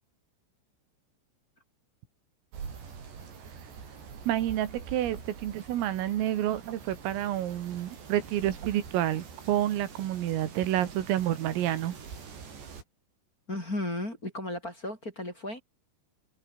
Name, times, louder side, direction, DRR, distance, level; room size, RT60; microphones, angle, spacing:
sound 1, 2.5-12.8, right 6 dB, 55° right, 7.3 m, -45 dB
voice 1, 4.3-12.0, right 12 dB, 80° right, 4.6 m, -29 dB
voice 2, 13.5-15.6, left 1 dB, 15° left, 5.3 m, -34 dB
omnidirectional pair, 6.0 m